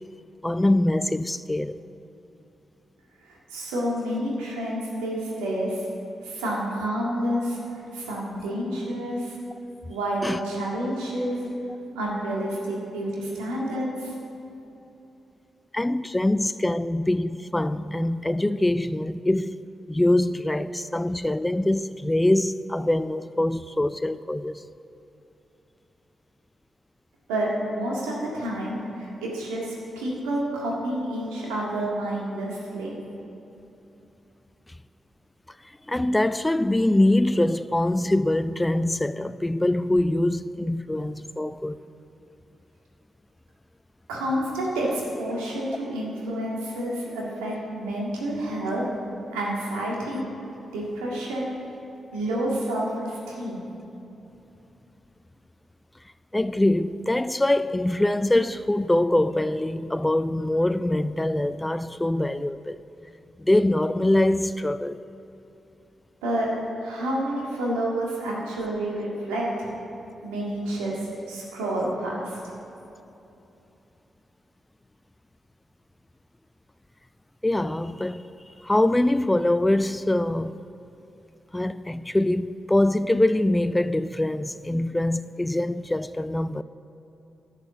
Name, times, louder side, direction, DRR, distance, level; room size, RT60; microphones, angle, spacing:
voice 1, 0.4-1.8 10.2-10.4 15.7-19.6 19.9-24.6 35.9-41.8 56.3-62.8 63.4-65.0 77.4-78.3 78.6-80.5 81.5-86.6, left 1 dB, 15° left, 0.4 m, -23 dB
voice 2, 3.2-5.8 6.2-9.3 9.9-11.5 11.9-14.1 27.3-33.0 44.1-48.8 49.3-50.2 50.7-51.5 52.1-53.7 66.2-66.5 66.8-69.7 70.2-72.5, right 1 dB, 90° right, 1.8 m, -29 dB
11.5 x 6.6 x 5.8 m
hypercardioid pair, 40°, 0 cm